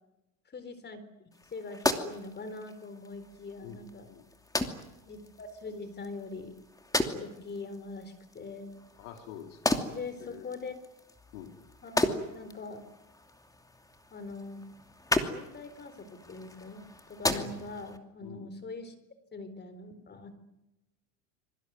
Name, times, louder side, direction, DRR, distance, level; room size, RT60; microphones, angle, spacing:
voice 1, 0.5-1.0 1.5-4.2 5.1-6.6 7.1-8.7 9.9-10.7 11.8-12.9 14.1-14.6 15.2-18.9 19.3-20.4, left 3 dB, 25° left, 12 dB, 4.2 m, -42 dB
sound 1, 1.3-18.0, left 2 dB, 10° left, 2.7 m, -36 dB
voice 2, 9.0-9.8 10.2-10.5 11.3-11.6 17.2-17.6 18.2-18.5, left 9 dB, 80° left, 4 dB, 3.9 m, -45 dB
26.0 x 23.5 x 9.5 m, 0.92 s
supercardioid pair, 120°, 39 cm